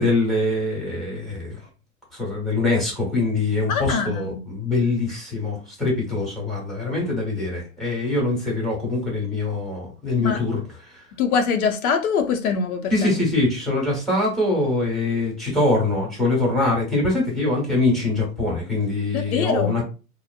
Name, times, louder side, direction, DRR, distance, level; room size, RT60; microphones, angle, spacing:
voice 1, 0.0-1.6 2.1-10.6 12.9-19.8, left 2 dB, ahead, 1.1 m, -23 dB
voice 2, 3.7-4.4 10.2-10.4 11.2-13.1 19.1-19.8, left 6 dB, 80° left, 0.7 m, -23 dB
2.9 x 2.0 x 2.4 m
hypercardioid pair, 130°, 42 cm